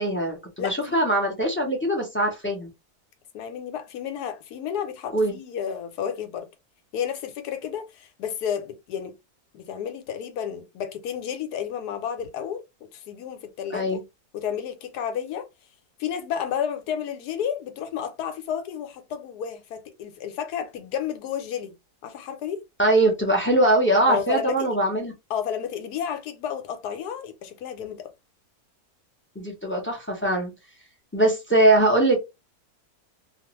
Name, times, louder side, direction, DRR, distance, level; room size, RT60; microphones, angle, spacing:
voice 1, 0.0-2.7 5.1-5.4 13.7-14.0 22.8-25.1 29.4-30.5 31.1-32.2, right 1 dB, 15° left, 0.4 m, -22 dB
voice 2, 0.6-1.0 3.3-6.5 6.9-9.1 9.5-12.6 12.9-14.0 14.3-15.5 16.0-21.7 22.0-22.6 24.1-24.8 25.3-28.1, left 8 dB, 85° left, 1.2 m, -31 dB
2.5 x 2.3 x 3.0 m
omnidirectional pair, 1.7 m